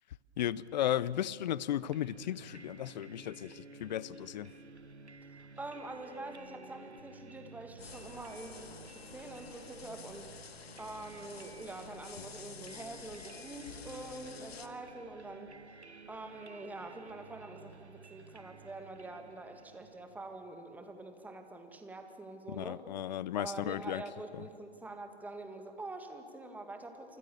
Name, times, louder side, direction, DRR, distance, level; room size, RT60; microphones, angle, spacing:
voice 1, 0.4-4.5 22.5-24.0 24.3-24.5, left 11 dB, 45° left, 0.7 m, -35 dB
sound 1, 1.9-20.6, right 4 dB, 90° right, 1.6 m, -54 dB
voice 2, 5.3-10.3 10.8-15.5 16.1-22.8 23.4-27.2, right 2 dB, 5° right, 1.8 m, -45 dB
sound 2, 7.8-14.7, left 6 dB, 65° left, 1.9 m, -50 dB
27.5 x 25.0 x 7.0 m
figure-of-eight pair, 130°, 33 cm